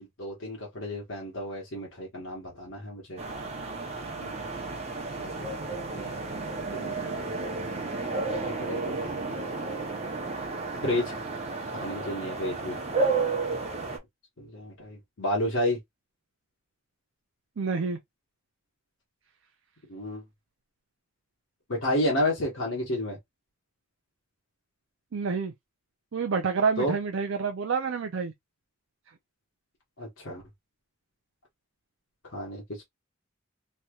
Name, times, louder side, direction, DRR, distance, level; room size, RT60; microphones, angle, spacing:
voice 1, 0.2-3.2 4.2-4.3 5.2-5.3 5.9-7.3 8.6-9.4 10.8-11.1 11.8-12.8 14.4-15.8 19.9-20.2 21.7-23.2 26.8-27.0 30.0-30.4 32.3-32.8, left 1 dB, 70° left, 1.1 m, -31 dB
sound 1, 3.2-14.0, right 3 dB, 35° right, 0.7 m, -32 dB
voice 2, 17.6-18.0 25.1-25.5 26.1-28.3, right 5 dB, 70° right, 0.5 m, -28 dB
3.2 x 2.8 x 2.3 m
head